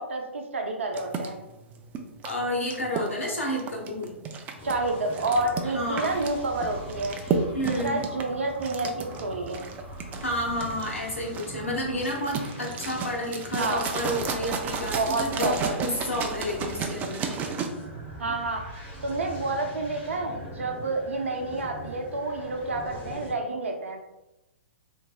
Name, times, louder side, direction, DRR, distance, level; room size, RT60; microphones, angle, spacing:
voice 1, 0.0-1.4 4.6-7.2 7.6-9.6 13.6-13.9 14.9-15.7 18.2-18.7 19.0-24.0, right 2 dB, 75° right, 3 dB, 0.6 m, -29 dB
sound 1, 0.9-17.7, right 5 dB, 25° right, 0.4 m, -33 dB
voice 2, 2.2-4.2 5.7-6.2 7.5-7.9 10.2-17.4, left 1 dB, 85° left, -1 dB, 1.0 m, -30 dB
sound 2, 4.6-23.3, equal, 20° left, 1.3 m, -41 dB
3.9 x 2.6 x 2.2 m, 0.94 s
figure-of-eight pair, 115°, 7 cm